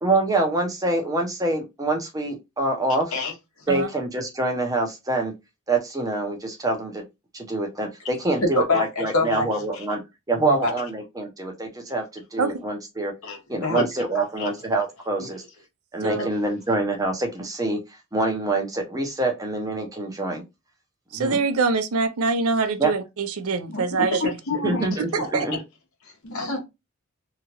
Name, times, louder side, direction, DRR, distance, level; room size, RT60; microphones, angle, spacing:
voice 1, 0.0-3.1 3.7-5.3 5.7-7.0 7.3-10.0 10.3-13.1 13.5-15.4 15.9-17.8 18.1-20.4 21.1-21.4 22.8-22.9 24.6-25.6, right 2 dB, 15° right, 0.6 m, -25 dB
voice 2, 8.4-9.5 9.7-9.8 10.4-10.7 13.2-13.8 14.1-14.5 15.2-15.3 23.7-25.6 26.2-26.6, left 2 dB, 75° left, 1.1 m, -26 dB
voice 3, 21.1-24.2 25.3-25.5, right 4 dB, 80° right, 0.5 m, -24 dB
2.9 x 2.3 x 2.8 m
head